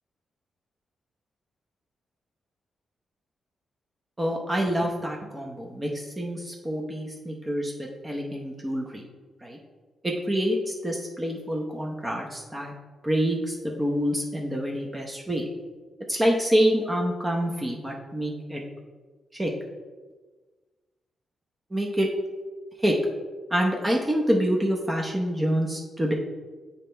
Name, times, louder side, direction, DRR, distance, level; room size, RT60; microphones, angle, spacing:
voice 1, 4.2-9.0 9.4-9.6 10.0-12.7 13.0-15.4 16.1-18.6 19.3-19.5 21.7-22.1 22.8-22.9 23.5-26.1, equal, 15° right, 0 dB, 0.7 m, -26 dB
7.4 x 4.2 x 3.4 m, 1.3 s
cardioid pair, 100°, 0 cm